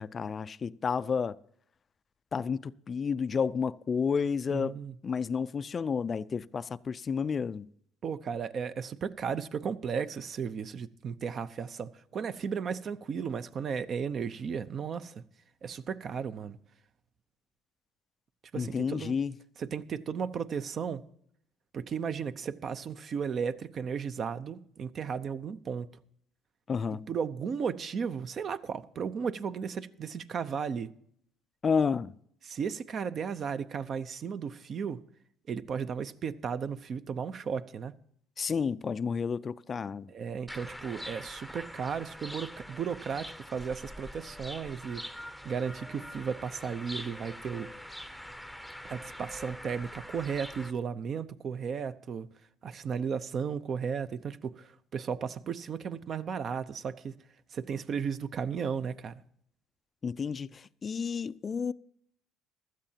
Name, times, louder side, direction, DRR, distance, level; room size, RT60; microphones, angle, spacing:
voice 1, 0.0-1.4 2.3-4.8 5.0-7.7 18.5-19.3 26.7-27.1 31.6-32.1 38.4-40.1 60.0-61.7, left 6 dB, 35° left, 0.4 m, -31 dB
voice 2, 4.5-5.0 8.0-15.2 15.6-16.6 18.5-19.2 19.6-21.0 21.7-25.9 26.9-30.9 32.4-35.0 35.5-37.9 40.1-45.1 45.4-47.7 48.8-52.3 52.6-57.2 57.5-59.2, right 6 dB, 45° right, 0.6 m, -35 dB
sound 1, 40.5-50.7, equal, 5° right, 0.8 m, -44 dB
16.0 x 12.5 x 2.8 m
supercardioid pair, 90°, 0 cm